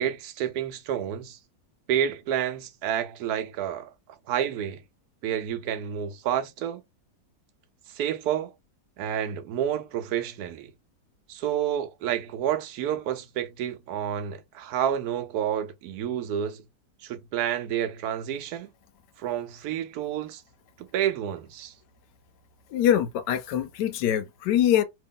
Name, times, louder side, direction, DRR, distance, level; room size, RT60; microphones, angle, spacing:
voice 1, 0.0-1.4 1.9-3.9 4.3-4.8 5.2-6.8 7.9-8.5 9.0-10.7 11.3-16.6 17.0-18.7 19.2-20.4 20.8-21.7, right 10 dB, 70° right, 1.1 m, -29 dB
voice 2, 22.7-24.8, left 10 dB, 85° left, 1.2 m, -23 dB
2.9 x 2.8 x 3.7 m
omnidirectional pair, 1.8 m